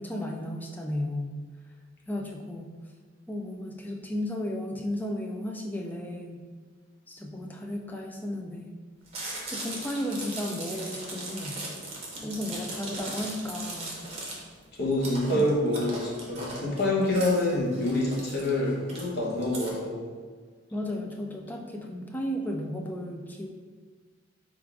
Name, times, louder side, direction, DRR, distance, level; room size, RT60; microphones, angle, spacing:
voice 1, 0.0-1.4 2.1-2.7 3.3-6.4 7.1-8.7 9.5-11.5 12.2-14.0 15.3-15.5 20.7-23.5, left 1 dB, 10° left, 1 dB, 0.3 m, -34 dB
Chewing mastication, 9.1-19.7, right 2 dB, 30° right, 0.7 m, -38 dB
voice 2, 14.8-20.1, left 1 dB, 55° left, -3 dB, 0.9 m, -26 dB
3.7 x 2.4 x 4.5 m, 1.5 s
head